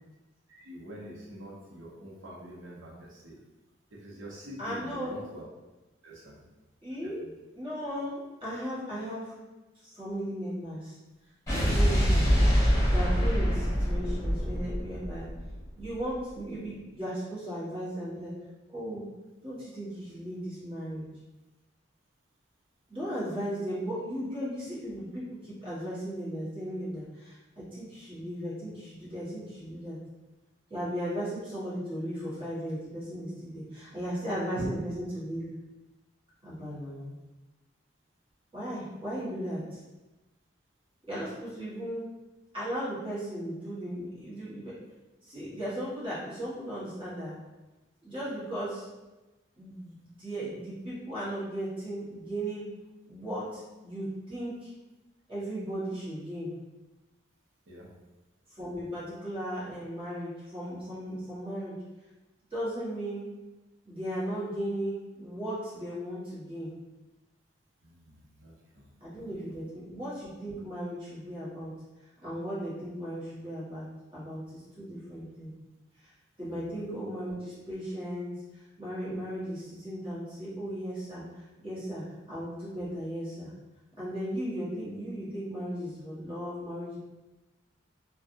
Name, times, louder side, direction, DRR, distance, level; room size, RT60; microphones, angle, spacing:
voice 1, 0.5-3.4 3.9-5.4 6.0-6.4 7.0-7.3 34.6-34.7 57.7-57.9 67.8-69.6 76.4-76.7, equal, 90° right, -3 dB, 0.8 m, -45 dB
voice 2, 4.6-5.2 6.8-7.2 7.5-9.3 9.8-11.0 11.5-15.3 15.8-18.3 18.7-19.0 19.4-21.1 22.9-30.0 30.7-35.4 36.4-37.2 38.5-39.8 41.1-42.1 42.5-44.8 45.2-47.3 48.0-48.9 49.6-52.7 53.1-54.7 55.3-56.5 58.5-61.7 62.5-63.2 63.8-66.7 69.0-71.7 72.2-73.9 74.1-75.5 76.0-76.1 76.4-83.5 84.0-87.0, equal, 30° right, -10 dB, 1.3 m, -36 dB
Explosion, 11.5-15.8, equal, 15° left, 1.2 m, -25 dB
3.5 x 2.3 x 2.6 m, 1.1 s
head